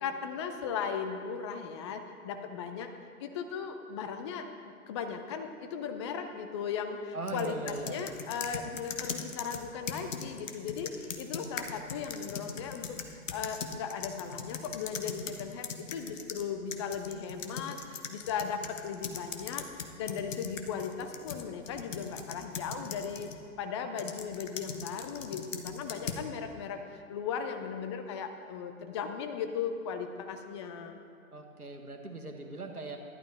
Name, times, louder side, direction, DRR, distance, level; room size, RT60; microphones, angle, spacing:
voice 1, 0.0-2.9 3.2-4.5 4.9-19.7 20.0-23.3 23.6-31.0, left 6 dB, 20° left, 7 dB, 0.5 m, -37 dB
voice 2, 7.1-8.0 31.3-33.0, right 2 dB, 90° right, 3 dB, 1.5 m, -39 dB
sound 1, 7.3-16.4 16.7-23.4 24.0-26.3, left 6 dB, 60° left, 1.1 m, -40 dB
12.0 x 11.5 x 4.2 m, 2.5 s
figure-of-eight pair, 115°, 43 cm